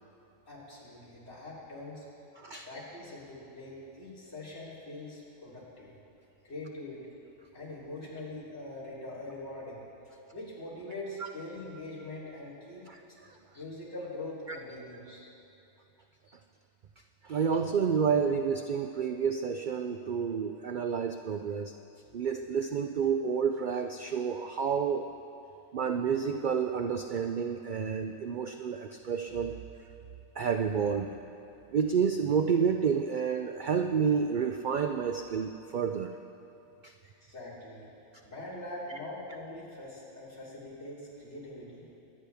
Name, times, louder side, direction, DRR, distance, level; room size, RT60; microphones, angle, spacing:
voice 1, 0.5-2.1 2.7-5.9 6.4-7.1 7.5-9.8 10.3-12.9 13.5-15.2 37.0-37.9 38.2-41.9, left 1 dB, 60° left, -8 dB, 3.7 m, -43 dB
voice 2, 2.4-2.7 17.2-21.7 22.1-25.1 25.7-29.6 30.4-31.2 31.7-36.1 36.8-36.9, right 6 dB, 65° right, 6 dB, 0.4 m, -29 dB
24.0 x 9.8 x 3.5 m, 2.8 s
omnidirectional pair, 1.4 m